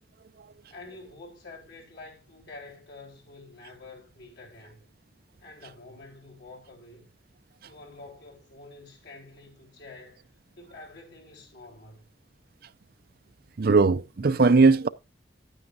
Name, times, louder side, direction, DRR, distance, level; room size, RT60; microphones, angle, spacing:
voice 1, 0.7-4.9 5.4-7.1 7.6-10.2 10.6-12.1, left 2 dB, 85° left, 4.0 m, -47 dB
voice 2, 13.6-14.9, right 4 dB, 60° right, 0.5 m, -19 dB
11.0 x 9.3 x 2.7 m
head